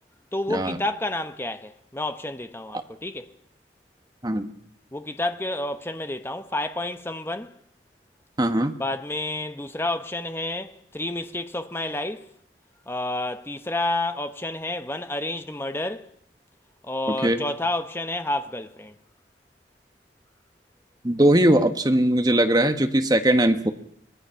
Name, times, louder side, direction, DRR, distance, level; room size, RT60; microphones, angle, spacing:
voice 1, 0.3-3.3 4.9-7.6 8.8-12.3 12.9-16.1 16.8-19.0, left 2 dB, 15° left, 0.9 m, -30 dB
voice 2, 8.4-8.7 17.2-17.4 21.0-23.7, right 1 dB, 20° right, 1.2 m, -20 dB
24.5 x 19.0 x 5.7 m
head